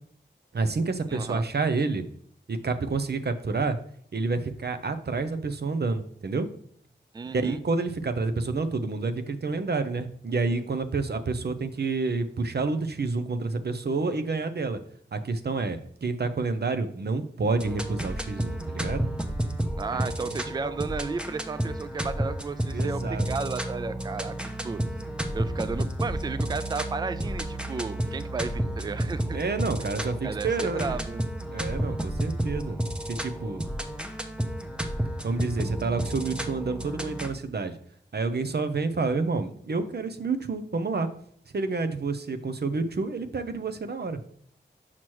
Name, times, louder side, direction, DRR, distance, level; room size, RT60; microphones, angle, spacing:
voice 1, 0.5-2.0 2.5-3.8 4.1-6.5 7.3-14.8 15.1-19.1 19.9-20.4 20.6-20.7 22.7-23.3 29.3-31.0 31.5-32.8 33.1-33.6 35.2-37.8 38.1-41.1 41.5-44.2, right 3 dB, 60° right, 9 dB, 0.6 m, -29 dB
voice 2, 1.1-1.5 7.1-7.6 19.8-24.4 24.6-24.8 25.3-29.4 29.8-29.9 30.2-31.2, right 4 dB, 20° right, 13 dB, 0.3 m, -33 dB
sound 1, 17.5-37.3, right 1 dB, 5° right, 0.7 m, -31 dB
6.1 x 5.8 x 3.1 m, 0.62 s
wide cardioid pair, 55°, 19 cm